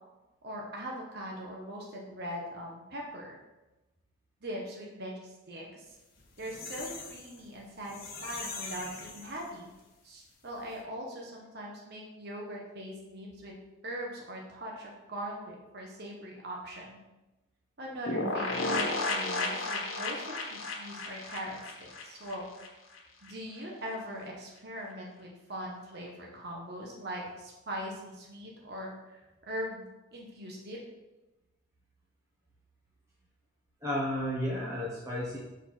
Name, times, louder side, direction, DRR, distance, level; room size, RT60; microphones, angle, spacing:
voice 1, 0.4-3.4 4.4-5.8 6.4-9.7 10.0-13.5 13.8-17.0 17.8-22.5 23.2-29.2 29.5-29.8 30.1-30.8, equal, 55° right, -2 dB, 1.2 m, -41 dB
sound 1, 6.0-9.8 10.2-10.3 10.6-10.7, left 4 dB, 50° left, 1.2 m, -43 dB
sound 2, 18.1-22.7 22.9-23.0 23.3-23.4, left 2 dB, 80° left, 1.2 m, -33 dB
voice 2, 33.8-35.4, equal, 15° right, -6 dB, 1.1 m, -32 dB
5.2 x 4.5 x 6.0 m, 1.0 s
head